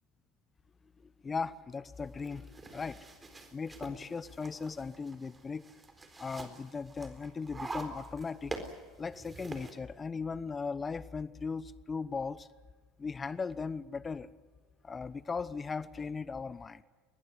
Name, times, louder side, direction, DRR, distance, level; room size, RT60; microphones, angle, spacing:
voice 1, 1.2-2.4 2.7-3.0 3.5-5.6 6.2-8.5 9.0-12.5 13.0-14.3 14.8-16.8, left 5 dB, 25° left, 0.9 m, -38 dB
sound 1, 2.0-9.7, right 3 dB, 15° right, 4.0 m, -46 dB
21.5 x 21.5 x 9.7 m
figure-of-eight pair, 75°, 0 cm